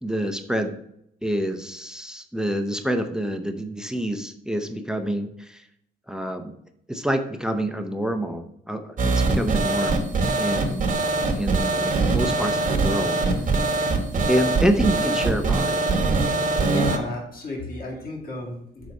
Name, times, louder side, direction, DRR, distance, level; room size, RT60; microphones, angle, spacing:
voice 1, 0.0-0.7 1.2-5.7 6.1-6.5 6.9-10.1 10.4-10.9 11.4-13.2 14.3-15.8, equal, 5° right, 7 dB, 0.7 m, -27 dB
sound 1, 9.0-17.0, right 3 dB, 40° right, 1.1 m, -22 dB
voice 2, 16.6-18.9, left 1 dB, 45° left, -2 dB, 2.2 m, -32 dB
6.2 x 4.0 x 5.2 m, 0.75 s
cardioid pair, 90°, 20 cm